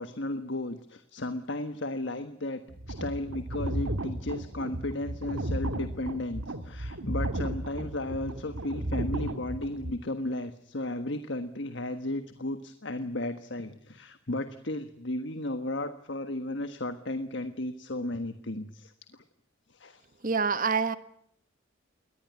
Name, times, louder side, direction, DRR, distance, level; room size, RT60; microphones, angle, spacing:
voice 1, 0.0-2.6 2.9-19.2 19.7-20.0, left 1 dB, 60° left, 10 dB, 1.4 m, -34 dB
sound 1, 2.7-9.9, right 1 dB, 85° right, 1.9 m, -34 dB
voice 2, 20.2-21.0, right 5 dB, 40° right, 13 dB, 1.1 m, -26 dB
23.0 x 19.0 x 9.7 m, 0.72 s
head